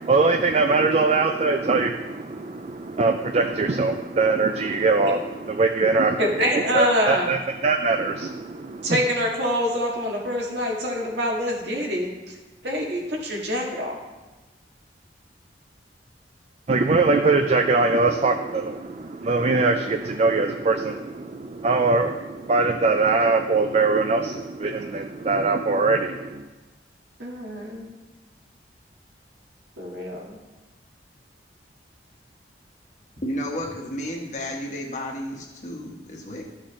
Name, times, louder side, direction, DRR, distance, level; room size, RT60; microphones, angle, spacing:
voice 1, 0.0-6.2 6.5-9.0 16.7-26.4, right 3 dB, 35° right, 6 dB, 0.4 m, -22 dB
voice 2, 6.2-7.3 8.8-12.1 12.6-14.0 27.2-27.9 29.8-30.4, equal, 70° right, -1 dB, 1.9 m, -25 dB
voice 3, 33.2-36.4, equal, 40° left, 0 dB, 1.4 m, -32 dB
13.0 x 6.3 x 3.2 m, 1.2 s
head